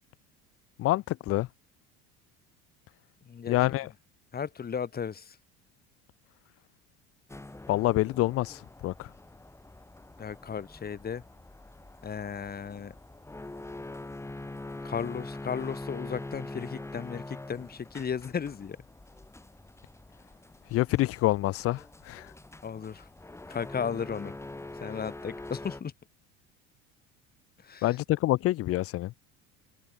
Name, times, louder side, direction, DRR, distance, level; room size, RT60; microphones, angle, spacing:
voice 1, 0.8-1.5 3.5-3.9 7.7-9.1 20.7-22.3 27.8-29.1, left 17 dB, 50° left, 0.7 m, -27 dB
voice 2, 3.3-3.8 4.3-5.4 10.2-11.2 12.0-12.9 14.8-18.8 22.6-23.1 23.5-24.3 24.8-25.9 27.6-28.0, left 7 dB, 30° left, 6.8 m, -35 dB
sound 1, 7.3-25.8, left 2 dB, 10° left, 6.1 m, -44 dB
supercardioid pair, 110°, 31 cm